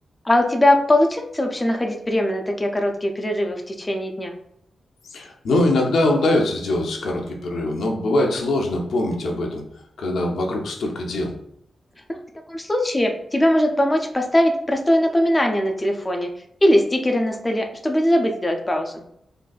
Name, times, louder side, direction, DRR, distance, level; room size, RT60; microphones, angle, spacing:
voice 1, 0.3-4.3 12.1-12.2 12.5-16.3 16.6-19.0, left 1 dB, 15° left, 3 dB, 0.4 m, -20 dB
voice 2, 5.1-9.6 10.0-11.3, left 1 dB, 90° left, 1 dB, 0.6 m, -22 dB
3.7 x 2.5 x 2.3 m, 0.72 s
wide cardioid pair, 130°, 0 cm